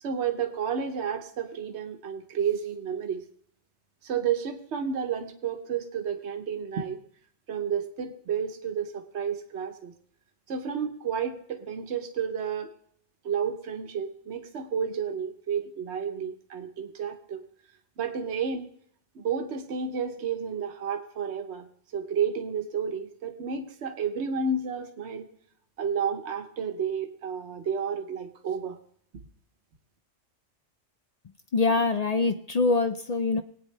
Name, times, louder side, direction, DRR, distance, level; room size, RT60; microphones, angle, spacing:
voice 1, 0.0-3.2 4.0-7.0 7.5-9.9 10.5-12.7 13.2-17.4 18.0-18.7 19.1-21.7 21.9-25.3 25.8-28.8, right 6 dB, 65° right, 5 dB, 1.2 m, -31 dB
voice 2, 31.5-33.4, left 3 dB, 55° left, 9 dB, 0.4 m, -24 dB
20.5 x 8.8 x 3.3 m, 0.64 s
omnidirectional pair, 1.2 m